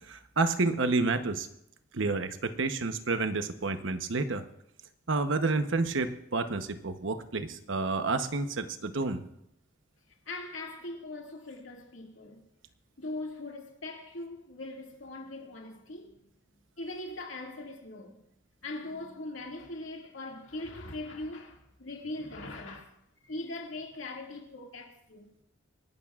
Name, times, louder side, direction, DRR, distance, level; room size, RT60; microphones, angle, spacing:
voice 1, 0.1-1.5 1.9-4.4 5.1-9.2, right 3 dB, 80° right, 0.9 m, -29 dB
voice 2, 10.3-12.4 13.0-16.3 16.8-18.2 18.6-22.9 23.2-25.3, left 2 dB, 90° left, 2.2 m, -41 dB
26.0 x 12.0 x 2.4 m
head